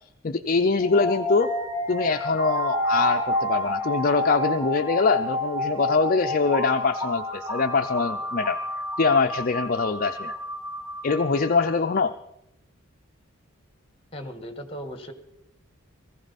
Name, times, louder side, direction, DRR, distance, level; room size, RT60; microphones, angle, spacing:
voice 1, 0.2-1.6 1.9-8.6 9.0-10.4 11.0-12.2, left 4 dB, 40° left, 6 dB, 0.5 m, -23 dB
sound 1, 0.8-11.7, equal, 20° right, 4.7 m, -29 dB
voice 2, 14.1-15.1, equal, 25° left, 8 dB, 1.6 m, -37 dB
19.5 x 15.0 x 4.1 m, 0.83 s
head